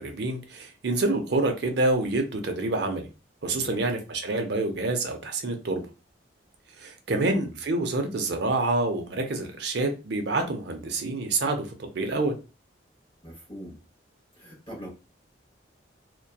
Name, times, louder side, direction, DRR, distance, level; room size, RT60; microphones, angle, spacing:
voice 1, 0.0-3.1 3.4-5.8 6.8-12.4, right 2 dB, 60° right, 0.5 m, -27 dB
voice 2, 3.5-3.8 7.1-7.6 13.2-13.8 14.4-14.9, equal, 25° left, 0.8 m, -41 dB
2.7 x 2.2 x 2.2 m
head